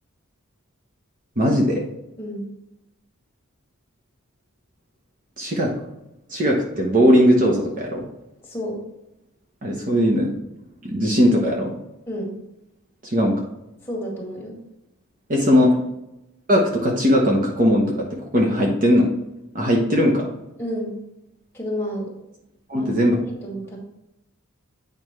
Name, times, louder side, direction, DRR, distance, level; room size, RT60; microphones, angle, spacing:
voice 1, 1.4-1.8 5.4-5.7 6.3-8.1 9.6-10.3 10.8-11.7 13.0-13.3 15.3-15.8 16.5-19.1 19.5-20.3 22.7-23.2, equal, 35° right, -1 dB, 0.9 m, -19 dB
voice 2, 8.4-8.8 12.1-12.4 13.8-14.5 20.6-21.0 21.5-22.1 22.8-23.8, equal, 10° left, -5 dB, 2.1 m, -30 dB
8.9 x 5.2 x 3.2 m, 0.90 s
head